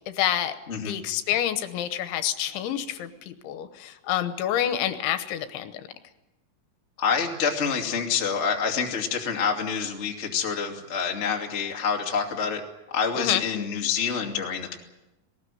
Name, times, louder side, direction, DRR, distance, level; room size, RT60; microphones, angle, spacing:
voice 1, 0.2-0.6 0.9-5.7 13.2-13.4, left 11 dB, 75° left, 10 dB, 3.1 m, -27 dB
voice 2, 7.0-12.6 12.9-14.8, left 6 dB, 40° left, 2 dB, 1.0 m, -27 dB
19.0 x 19.0 x 9.2 m, 0.99 s
omnidirectional pair, 5.8 m